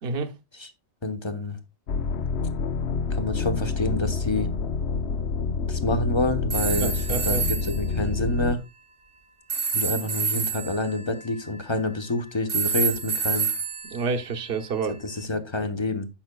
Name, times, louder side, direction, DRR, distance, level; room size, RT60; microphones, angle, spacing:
voice 1, 0.0-0.3 6.8-7.4 13.8-15.0, right 4 dB, 55° right, 1.1 m, -29 dB
voice 2, 1.0-1.6 3.1-4.5 5.7-8.6 9.7-13.5 15.0-16.1, left 2 dB, 25° left, 1.0 m, -27 dB
sound 1, 1.9-8.6, left 4 dB, 65° left, 0.9 m, -28 dB
sound 2, 6.5-7.8 9.5-12.0 12.5-14.8, right 6 dB, 30° right, 0.7 m, -28 dB
16.0 x 5.6 x 2.2 m
omnidirectional pair, 1.2 m